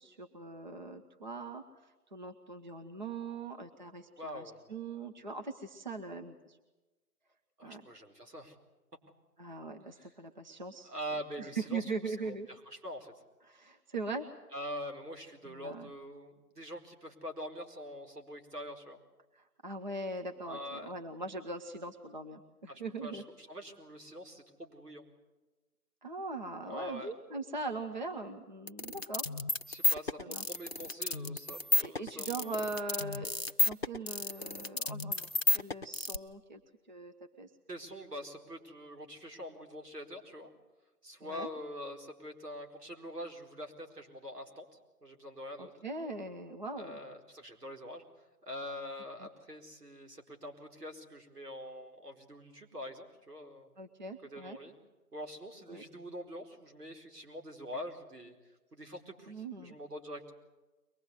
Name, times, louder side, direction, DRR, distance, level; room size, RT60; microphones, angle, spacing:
voice 1, 0.0-1.6 2.1-4.4 4.7-6.6 7.6-7.8 9.4-10.9 11.4-12.5 13.5-14.3 15.5-15.9 19.4-23.2 26.0-29.2 30.2-30.5 31.8-33.3 33.6-35.3 35.5-36.6 36.9-37.5 41.2-41.5 45.6-47.0 49.2-49.3 53.8-54.6 55.7-55.8 59.3-59.8, right 3 dB, 30° right, 5 dB, 0.9 m, -41 dB
voice 2, 4.2-4.6 7.6-8.6 9.9-10.1 10.8-12.3 12.7-13.1 14.5-19.0 20.4-20.9 22.7-25.0 26.6-27.1 29.7-32.6 37.7-40.5 41.0-44.7 45.0-45.8 46.7-48.0 48.4-53.7 54.2-54.8 55.1-58.3 58.7-60.3, equal, 75° right, 3 dB, 4.5 m, -44 dB
sound 1, 28.7-36.2, left 2 dB, 40° left, 0.8 m, -31 dB
23.5 x 20.5 x 8.3 m, 1.1 s
figure-of-eight pair, 160°, 47 cm